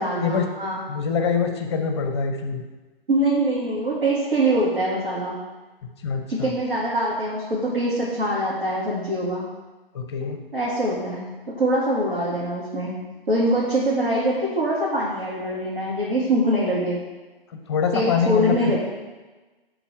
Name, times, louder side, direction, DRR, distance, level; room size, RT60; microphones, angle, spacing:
voice 1, 0.0-0.8 3.1-5.3 6.3-9.5 10.5-13.0 13.3-17.1 17.9-18.8, right 1 dB, 65° right, -6 dB, 2.1 m, -23 dB
voice 2, 0.9-2.6 6.0-6.5 9.9-10.4 17.7-18.8, left 6 dB, 30° left, 5 dB, 0.7 m, -24 dB
11.5 x 3.9 x 4.7 m, 1.2 s
figure-of-eight pair, 130°, 30 cm